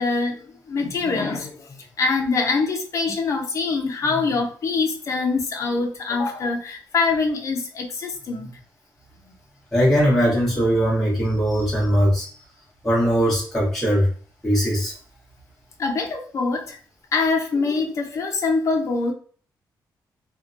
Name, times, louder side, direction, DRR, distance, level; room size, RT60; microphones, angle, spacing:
voice 1, 0.0-8.5 15.8-16.8 17.1-19.1, left 4 dB, 40° left, 2 dB, 0.5 m, -24 dB
voice 2, 9.7-12.3 12.8-14.1 14.4-14.9, equal, 5° left, -8 dB, 1.1 m, -20 dB
2.7 x 2.1 x 2.5 m, 0.43 s
wide cardioid pair, 175°, 8 cm